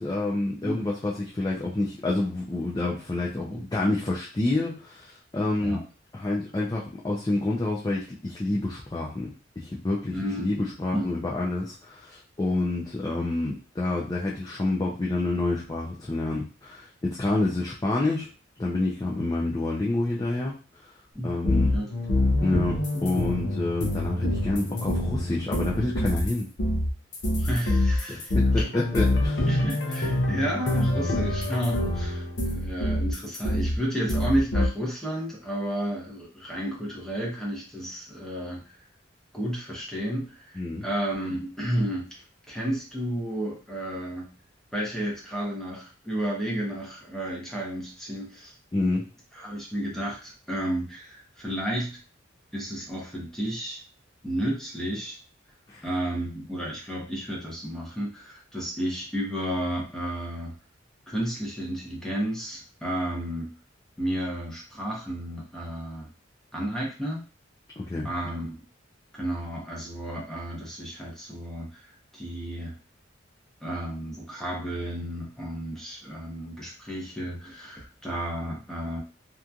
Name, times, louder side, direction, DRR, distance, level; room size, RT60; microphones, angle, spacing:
voice 1, 0.0-5.8 6.1-9.3 9.6-18.3 18.6-20.5 21.2-21.7 22.4-26.5 28.1-29.5 40.6-40.8 48.7-49.1 55.7-55.8 67.8-68.1, left 2 dB, 20° left, -4 dB, 0.4 m, -28 dB
voice 2, 10.1-10.5 10.9-11.1 21.1-21.4 21.7-21.9 27.4-28.7 29.5-38.6 39.3-42.1 42.5-44.3 44.7-48.5 49.3-52.0 52.5-53.8 54.2-55.2 55.8-60.5 61.1-63.5 64.0-66.1 66.5-67.2 68.0-68.6 69.1-71.8 72.1-72.7 73.6-79.0, right 1 dB, 5° left, -4 dB, 0.8 m, -32 dB
sound 1, 21.4-26.3 26.6-33.8 34.1-34.7, left 1 dB, 60° left, 0.6 m, -25 dB
2.9 x 2.5 x 2.3 m, 0.34 s
head